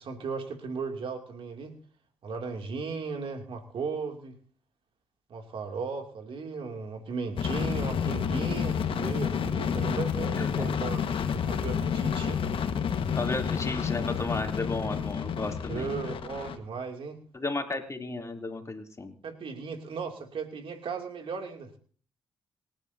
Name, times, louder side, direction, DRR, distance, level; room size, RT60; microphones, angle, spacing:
voice 1, 0.0-1.7 2.2-4.3 5.3-11.1 11.5-12.4 15.7-17.2 19.2-21.7, right 5 dB, 65° right, 3 dB, 2.6 m, -36 dB
sound 1, 7.4-16.6, left 7 dB, 65° left, 1.5 m, -29 dB
voice 2, 10.3-10.7 13.1-15.9 17.3-19.1, left 3 dB, 30° left, 3 dB, 3.0 m, -34 dB
27.0 x 10.5 x 2.7 m, 0.43 s
supercardioid pair, 50°, 10 cm